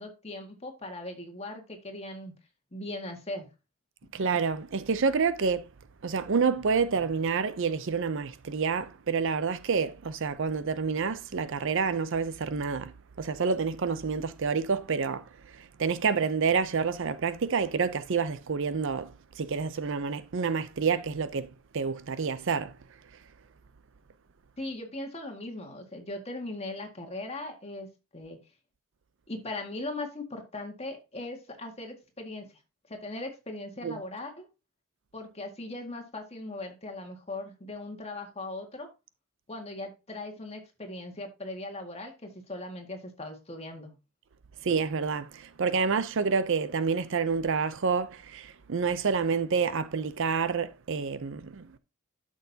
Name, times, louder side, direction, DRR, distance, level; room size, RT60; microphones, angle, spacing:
voice 1, 0.0-2.3 2.7-3.5 24.6-28.4 29.3-32.5 32.9-34.5 35.1-38.9 39.5-43.9, left 2 dB, 30° left, 1.9 m, -39 dB
voice 2, 4.1-5.7 6.0-22.8 33.8-34.0 44.6-51.7, right 5 dB, 60° right, 0.6 m, -28 dB
11.5 x 6.3 x 2.8 m
head